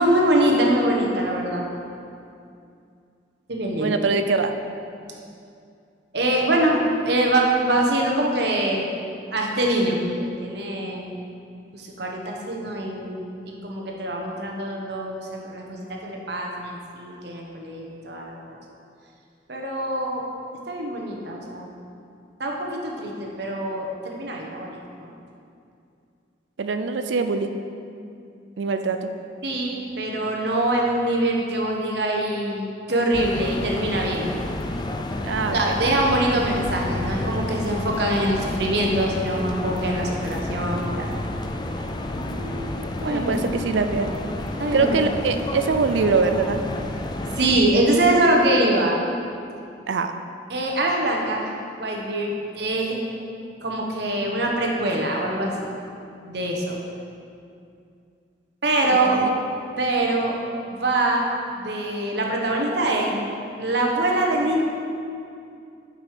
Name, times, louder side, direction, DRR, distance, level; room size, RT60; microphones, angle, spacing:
voice 1, 0.0-1.6 3.5-4.0 6.1-8.8 9.3-11.0 11.7-18.6 19.5-20.2 20.7-21.7 22.4-25.1 29.4-34.3 35.5-41.1 43.0-43.4 44.6-45.0 47.3-49.0 50.5-51.5 51.8-53.0 53.6-55.6 56.2-56.8 58.6-59.2 59.8-61.2 61.5-63.2 63.6-64.6, right 1 dB, 60° right, 0 dB, 1.0 m, -24 dB
voice 2, 3.8-4.5 26.6-27.6 28.6-29.1 35.2-35.8 42.2-44.1 44.7-46.6 49.9-50.1 59.1-59.3, right 4 dB, 75° right, 8 dB, 0.5 m, -24 dB
sound 1, 33.1-47.6, left 1 dB, 25° left, 0.3 m, -30 dB
7.4 x 5.3 x 5.0 m, 2.5 s
head